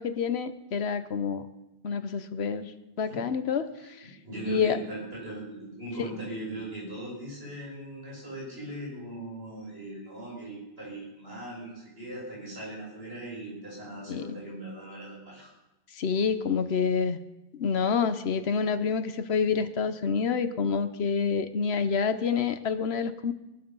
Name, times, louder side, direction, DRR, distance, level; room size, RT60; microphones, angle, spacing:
voice 1, 0.0-1.5 1.8-4.1 4.5-4.8 14.1-14.3 15.9-17.2 17.5-23.3, left 6 dB, 85° left, 11 dB, 1.2 m, -28 dB
voice 2, 4.2-15.5, right 1 dB, 70° right, -4 dB, 6.4 m, -39 dB
20.0 x 11.5 x 5.5 m, 0.98 s
omnidirectional pair, 1.0 m